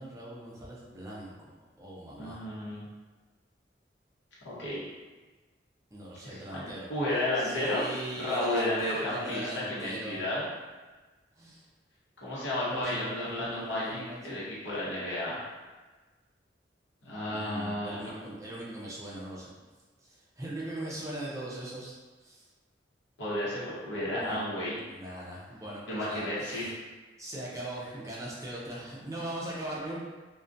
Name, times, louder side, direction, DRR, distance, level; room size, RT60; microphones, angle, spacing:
voice 1, 0.0-2.5 5.9-6.9 7.3-10.2 11.4-11.7 12.7-14.4 17.3-19.5 20.0-21.9 22.2-22.5 24.1-24.4 24.9-26.7 27.2-30.0, right 1 dB, 15° right, -6 dB, 0.4 m, -40 dB
voice 2, 2.2-2.9 4.4-4.8 6.2-7.8 8.1-10.4 12.2-15.5 17.0-18.0 23.2-24.8 25.9-26.7, left 1 dB, 75° left, -8 dB, 0.8 m, -32 dB
2.3 x 2.1 x 2.5 m, 1.3 s
head